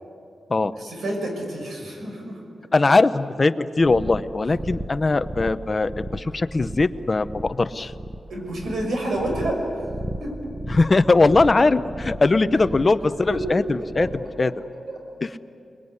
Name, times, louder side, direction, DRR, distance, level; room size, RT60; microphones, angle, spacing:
voice 1, 0.8-2.4 8.3-9.9 10.2-10.5 13.3-13.4 13.8-14.1 14.4-14.5 14.9-15.0, right 1 dB, 85° right, 1 dB, 5.9 m, -29 dB
voice 2, 2.7-7.9 10.7-14.1 14.4-14.5 15.2-15.3, left 3 dB, 25° left, 12 dB, 0.7 m, -20 dB
sound 1, 3.8-14.3, right 1 dB, 10° right, 0.7 m, -35 dB
29.0 x 20.5 x 9.7 m, 2.6 s
wide cardioid pair, 175°, 0 cm